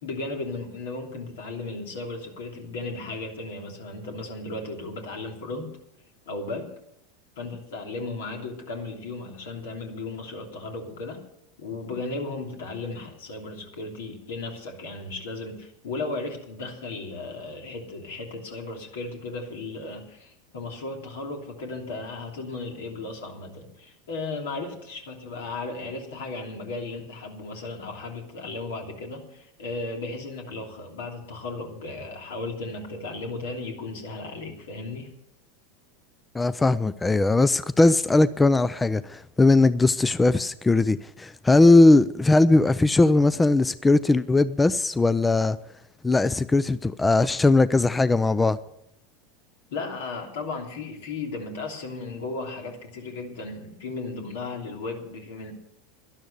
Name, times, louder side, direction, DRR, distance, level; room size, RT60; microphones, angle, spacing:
voice 1, 0.0-5.7 6.3-6.7 7.4-11.2 11.6-35.1 49.7-55.5, left 3 dB, 75° left, 2.9 m, -35 dB
voice 2, 36.3-45.6 46.0-48.6, left 2 dB, 15° left, 0.4 m, -19 dB
12.0 x 11.0 x 6.7 m
hypercardioid pair, 95°, 0 cm